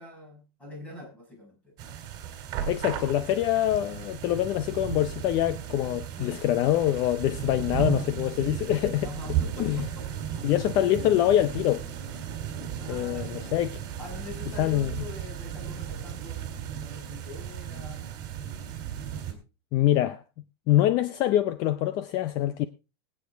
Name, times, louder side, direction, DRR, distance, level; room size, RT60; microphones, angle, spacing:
voice 1, 0.0-1.7 6.2-6.4 9.0-10.5 12.8-13.6 14.0-18.1 19.1-19.4, left 2 dB, 10° left, 5.9 m, -44 dB
sound 1, 1.8-19.3, right 9 dB, 30° right, 3.1 m, -35 dB
voice 2, 2.7-9.1 9.6-9.8 10.4-11.8 12.9-13.7 14.6-14.9 19.7-20.2 20.7-22.7, left 13 dB, 30° left, 0.5 m, -25 dB
20.5 x 8.7 x 3.5 m
supercardioid pair, 175°, 13 cm